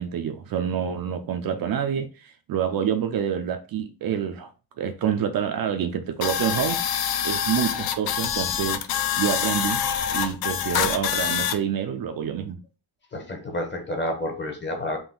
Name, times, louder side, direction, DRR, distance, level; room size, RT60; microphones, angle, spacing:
voice 1, 0.0-4.5 4.8-6.8 7.2-8.8 9.2-9.8 10.1-12.6, right 8 dB, 50° right, 0.5 m, -27 dB
sound 1, 6.2-11.6, left 9 dB, 55° left, 0.5 m, -26 dB
voice 2, 13.1-15.0, left 1 dB, 25° left, 0.8 m, -29 dB
3.8 x 2.5 x 3.7 m
cardioid pair, 165°, 45 cm